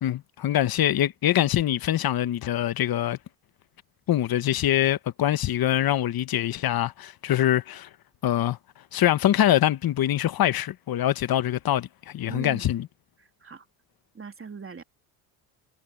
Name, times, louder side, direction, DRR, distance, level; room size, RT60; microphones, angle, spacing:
voice 1, 0.0-3.2 4.1-7.9 8.2-8.6 8.9-12.9, left 12 dB, 50° left, 1.2 m, -24 dB
voice 2, 12.3-12.7 13.2-13.6 14.1-14.8, right 5 dB, 30° right, 3.3 m, -40 dB
supercardioid pair, 80°, 46 cm